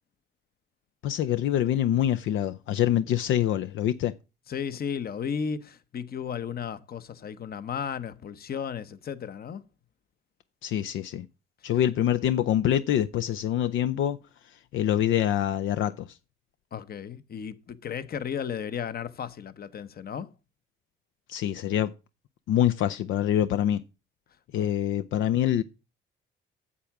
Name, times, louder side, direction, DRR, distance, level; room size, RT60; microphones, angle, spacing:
voice 1, 1.0-4.1 10.6-11.3 11.6-14.2 14.7-16.2 21.3-21.9 22.5-23.8 24.5-25.6, left 11 dB, 80° left, 0.5 m, -25 dB
voice 2, 4.5-9.6 16.7-20.3 24.5-24.7, left 7 dB, 50° left, 1.0 m, -34 dB
8.4 x 7.4 x 5.9 m
cardioid pair, 90°, 20 cm